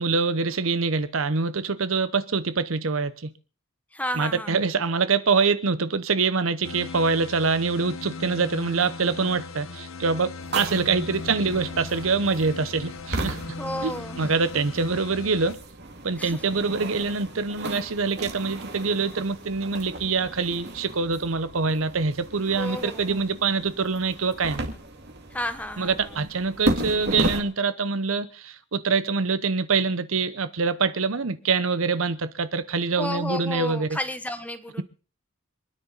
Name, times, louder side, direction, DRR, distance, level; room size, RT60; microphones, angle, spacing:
voice 1, 0.0-3.3 4.2-13.4 13.8-13.9 14.2-15.6 16.0-24.7 25.8-34.0, right 4 dB, 75° right, 0.9 m, -25 dB
voice 2, 3.9-4.6 13.6-14.3 16.2-16.4 22.5-23.2 25.3-26.2 33.0-34.8, left 1 dB, 5° left, 1.2 m, -32 dB
sound 1, 6.6-15.6, left 3 dB, 90° left, 1.0 m, -38 dB
sound 2, 10.4-27.4, right 1 dB, 55° right, 2.4 m, -35 dB
26.5 x 9.9 x 4.0 m
head